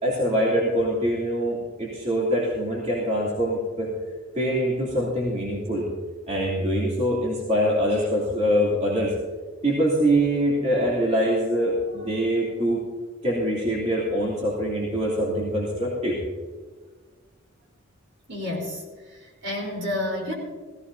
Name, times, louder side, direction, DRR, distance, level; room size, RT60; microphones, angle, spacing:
voice 1, 0.0-3.9 4.3-5.9 6.3-9.1 9.6-12.8 13.2-16.2, equal, 30° right, -5 dB, 3.0 m, -24 dB
voice 2, 18.3-18.8 19.1-20.3, left 1 dB, 55° right, -1 dB, 4.1 m, -30 dB
17.5 x 16.0 x 2.8 m, 1.4 s
head